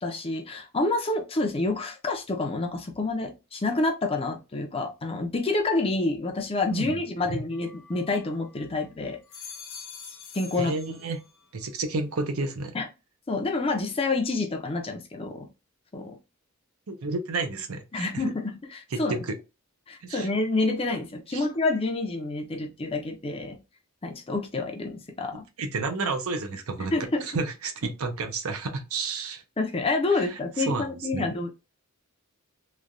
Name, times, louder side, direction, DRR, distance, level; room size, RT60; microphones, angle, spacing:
voice 1, 0.0-9.2 10.3-11.0 12.7-12.9 13.3-15.5 15.9-16.2 17.9-19.2 19.9-23.6 24.0-25.5 26.9-27.2 29.6-31.5, left 2 dB, 25° left, 0.5 m, -28 dB
sound 1, 7.5-8.6 9.1-11.5 11.9-12.5, left 5 dB, 80° left, 1.0 m, -46 dB
voice 2, 10.6-11.2 11.5-12.8 16.9-18.2 18.9-19.3 20.0-20.3 21.3-21.4 25.6-26.9 27.2-29.4 30.1-30.4 30.7-30.9 31.1-31.3, right 3 dB, 65° right, 0.6 m, -31 dB
3.1 x 2.2 x 2.4 m
head